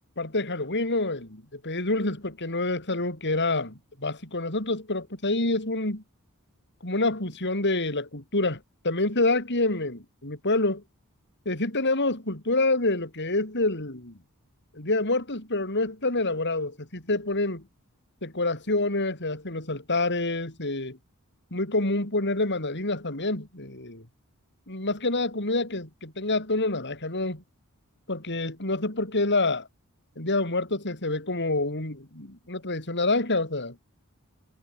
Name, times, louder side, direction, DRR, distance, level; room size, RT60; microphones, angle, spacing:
voice 1, 0.2-6.0 6.8-10.8 11.5-14.2 14.7-17.6 18.2-21.0 21.5-24.0 24.7-27.4 28.1-29.7 30.2-33.8, left 2 dB, 50° left, 6.0 m, -27 dB
head